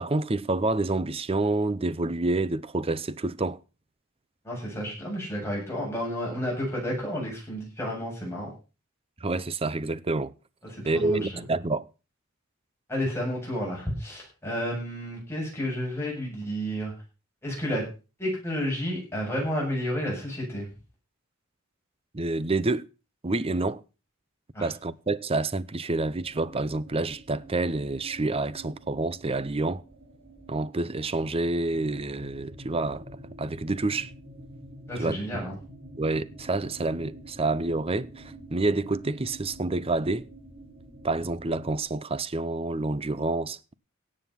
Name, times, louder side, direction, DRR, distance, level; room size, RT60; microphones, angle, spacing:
voice 1, 0.0-3.6 9.2-10.3 10.9-11.9 22.1-22.9 23.2-23.8 24.6-29.8 30.5-33.0 33.4-34.1 35.0-35.4 36.0-40.3 41.0-43.7, right 2 dB, 25° right, 0.7 m, -28 dB
voice 2, 4.4-8.5 10.7-11.4 12.9-16.9 17.4-17.8 18.2-20.7 24.5-24.7 34.9-35.6, equal, 10° left, 7.9 m, -31 dB
sound 1, 25.9-41.8, right 1 dB, 50° right, 4.3 m, -48 dB
17.0 x 7.6 x 5.8 m
head